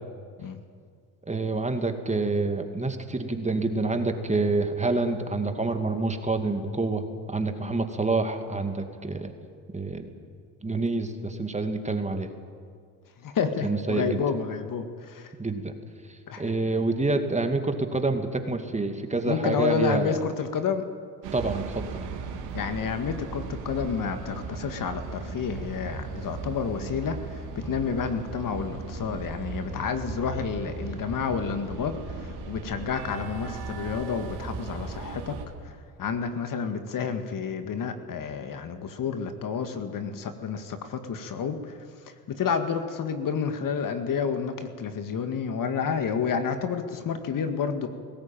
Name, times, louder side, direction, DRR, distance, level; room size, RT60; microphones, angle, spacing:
voice 1, 1.3-9.3 9.7-10.1 10.6-12.3 13.6-14.2 15.4-15.7 16.1-20.2 21.3-22.0, right 3 dB, 15° right, 6 dB, 2.3 m, -27 dB
voice 2, 13.2-15.3 16.3-16.4 19.2-20.8 22.5-35.4 35.6-35.7 36.0-41.7 42.0-47.9, left 6 dB, 45° left, 8 dB, 2.0 m, -30 dB
sound 1, 21.2-35.5, right 4 dB, 65° right, 3.8 m, -37 dB
19.0 x 16.5 x 9.0 m, 2.1 s
hypercardioid pair, 70°, 45 cm